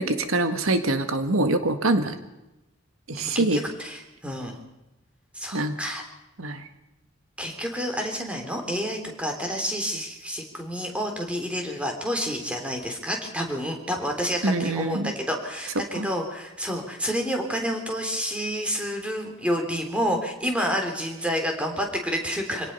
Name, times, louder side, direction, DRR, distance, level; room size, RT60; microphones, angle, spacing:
voice 1, 0.0-2.2 3.1-3.6 5.5-5.8 6.4-6.7 14.4-15.1 15.9-16.1, right 2 dB, 90° right, 8 dB, 1.8 m, -24 dB
voice 2, 3.2-4.6 5.3-6.0 7.4-22.7, equal, 5° right, 2 dB, 3.3 m, -29 dB
26.0 x 18.0 x 5.6 m, 0.96 s
head